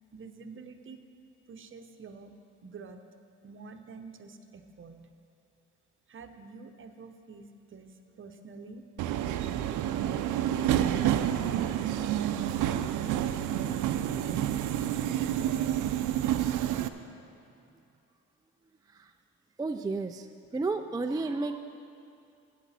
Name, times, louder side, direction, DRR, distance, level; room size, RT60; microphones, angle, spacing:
voice 1, 0.1-1.1 1.5-3.0 3.4-5.0 6.1-8.8, right 4 dB, 40° right, 7 dB, 0.8 m, -48 dB
Subway metro underground, 9.0-16.9, right 11 dB, 80° right, 0.5 m, -29 dB
voice 2, 19.6-20.3 20.5-21.6, right 3 dB, 15° right, 6 dB, 0.3 m, -31 dB
14.0 x 9.3 x 4.2 m, 2.6 s
cardioid pair, 90°, 30 cm